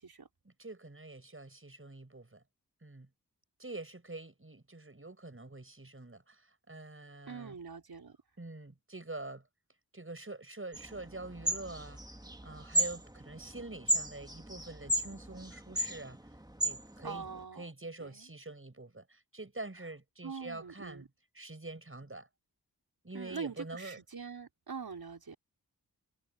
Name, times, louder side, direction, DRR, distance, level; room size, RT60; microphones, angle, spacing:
voice 1, 0.4-2.4 2.8-3.1 3.6-7.6 8.4-9.4 9.9-12.0 12.4-16.2 16.6-17.3 17.6-21.1 21.3-22.3 23.0-24.0, right 2 dB, 35° right, 7.0 m, -45 dB
voice 2, 7.3-8.2 17.0-17.7 18.0-18.3 20.2-21.1 23.1-25.4, right 5 dB, 75° right, 4.2 m, -43 dB
sound 1, 10.7-17.4, right 1 dB, 10° right, 2.1 m, -35 dB
wide cardioid pair, 60°, 37 cm